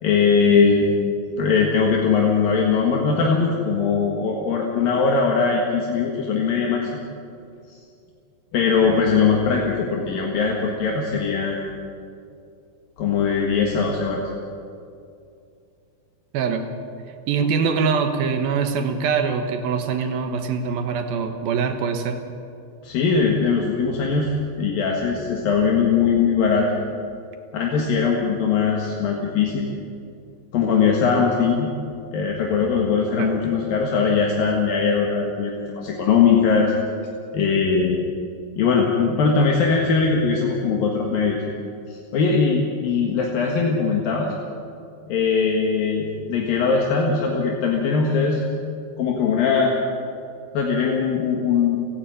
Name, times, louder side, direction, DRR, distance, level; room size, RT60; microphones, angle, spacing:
voice 1, 0.0-0.9 1.4-7.0 7.7-7.8 8.5-11.6 13.0-14.2 22.8-24.3 24.6-26.7 27.5-29.7 30.5-31.7 32.1-36.7 37.3-38.0 38.6-41.4 41.9-44.3 45.1-48.4 49.0-49.7 50.5-51.8, left 5 dB, 70° left, -1 dB, 3.4 m, -20 dB
voice 2, 16.3-16.7 17.3-22.2 33.2-33.3, right 5 dB, 80° right, 7 dB, 3.1 m, -23 dB
30.0 x 10.5 x 9.1 m, 2.5 s
omnidirectional pair, 4.3 m